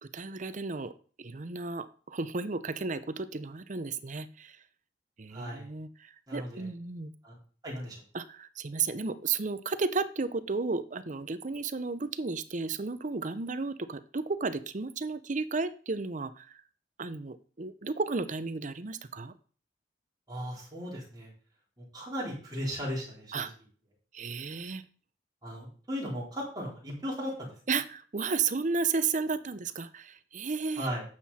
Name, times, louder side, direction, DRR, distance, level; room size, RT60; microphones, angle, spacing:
voice 1, 0.0-4.6 5.2-7.1 8.1-16.6 17.0-19.3 23.3-23.5 24.1-24.8 27.7-30.9, right 4 dB, 45° right, 12 dB, 0.7 m, -33 dB
voice 2, 5.3-5.7 6.3-6.7 7.2-7.4 7.6-8.0 20.3-21.3 21.8-23.5 25.4-27.5 30.8-31.0, equal, 20° right, -5 dB, 4.1 m, -36 dB
11.0 x 7.5 x 4.3 m, 0.42 s
head